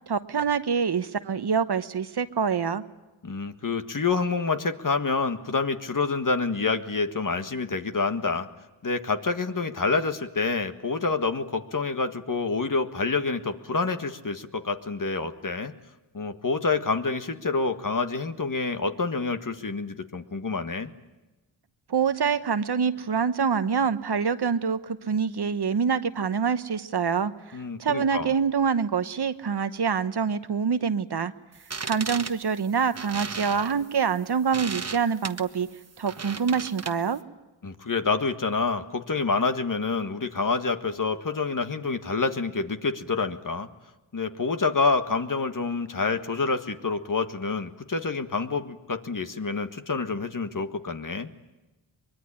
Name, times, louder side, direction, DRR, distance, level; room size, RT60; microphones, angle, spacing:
voice 1, 0.1-2.8 21.9-31.3 31.8-35.7 36.0-37.2, right 6 dB, 55° right, 12 dB, 1.1 m, -26 dB
voice 2, 3.2-8.5 8.8-15.7 16.1-20.9 27.5-28.3 37.6-43.7 44.1-51.3, left 4 dB, 40° left, 8 dB, 1.7 m, -27 dB
sound 1, 31.5-37.2, right 4 dB, 30° right, 1.2 m, -36 dB
23.5 x 22.0 x 10.0 m, 1.1 s
cardioid pair, 65°, 48 cm